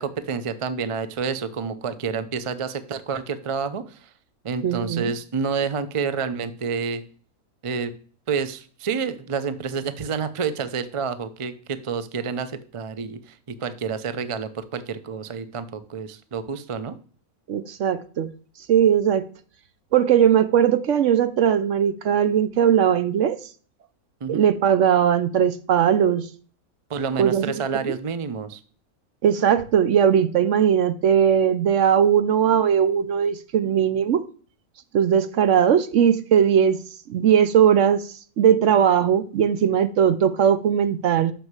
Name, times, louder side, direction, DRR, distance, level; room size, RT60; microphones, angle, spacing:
voice 1, 0.0-4.1 4.4-7.0 7.6-7.9 8.3-17.0 24.2-24.4 26.9-28.6, right 5 dB, 45° right, 0.4 m, -29 dB
voice 2, 4.6-5.1 17.5-18.3 18.7-19.3 19.9-23.4 24.3-26.3 27.2-27.5 27.8-27.9 29.2-34.2 34.9-36.8 37.1-38.0 38.4-41.3, right 8 dB, 60° right, 0.9 m, -19 dB
6.4 x 6.3 x 7.4 m
omnidirectional pair, 1.5 m